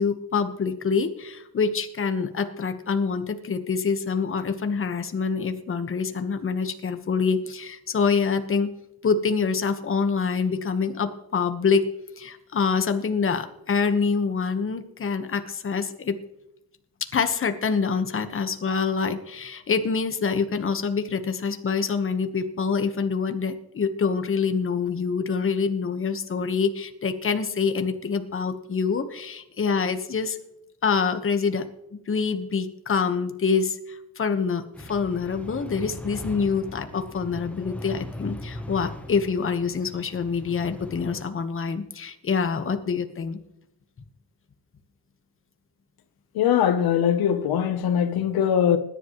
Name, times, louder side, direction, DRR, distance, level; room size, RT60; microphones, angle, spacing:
voice 1, 0.0-8.7 9.0-11.9 12.2-16.2 17.0-30.4 30.8-31.6 31.9-43.4, left 5 dB, 35° left, 1.3 m, -26 dB
sound 1, 34.7-41.2, left 1 dB, 5° left, 1.0 m, -39 dB
voice 2, 46.3-48.8, left 9 dB, 90° left, 0.9 m, -21 dB
20.0 x 10.5 x 3.1 m
cardioid pair, 120°, 36 cm